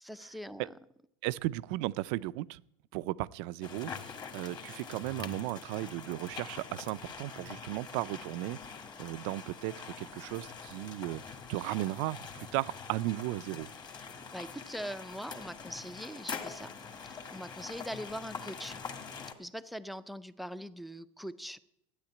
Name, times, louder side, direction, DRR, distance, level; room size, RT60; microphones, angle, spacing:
voice 1, 0.0-0.7 13.9-16.7 17.1-18.8 19.4-21.6, equal, ahead, 0.5 m, -42 dB
voice 2, 1.2-2.6 2.9-3.9 4.3-8.6 9.0-13.7, right 17 dB, 65° right, 0.5 m, -35 dB
sound 1, 3.6-19.3, left 5 dB, 25° left, 1.7 m, -44 dB
13.5 x 9.7 x 8.5 m
supercardioid pair, 135°, 16 cm